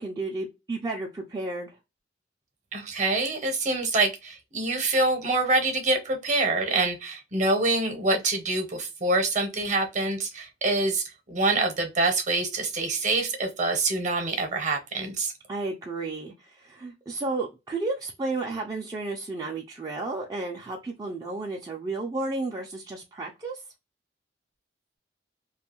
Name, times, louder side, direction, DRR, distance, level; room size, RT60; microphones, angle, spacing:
voice 1, 0.0-1.8 15.5-23.6, right 3 dB, 20° right, 0.3 m, -32 dB
voice 2, 2.7-15.3, right 2 dB, 45° right, 0.7 m, -26 dB
2.4 x 2.3 x 2.9 m
head